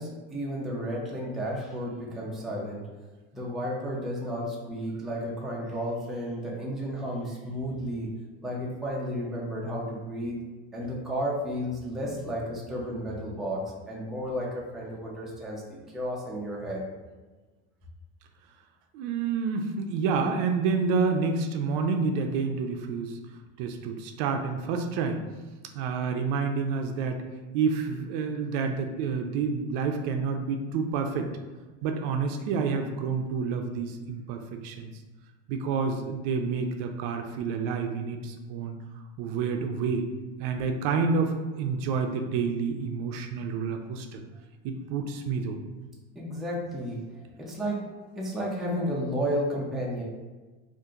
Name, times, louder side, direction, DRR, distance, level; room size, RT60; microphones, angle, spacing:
voice 1, 0.0-2.8 3.3-8.2 8.4-10.4 10.7-16.8 46.2-50.0, equal, ahead, -4 dB, 0.4 m, -32 dB
voice 2, 18.9-23.2 23.6-25.2 25.7-27.2 27.5-31.3 31.8-34.9 35.5-38.8 39.2-40.1 40.4-44.2 44.6-45.6, right 5 dB, 60° right, 5 dB, 0.4 m, -29 dB
2.8 x 2.5 x 3.6 m, 1.2 s
cardioid pair, 150°, 31 cm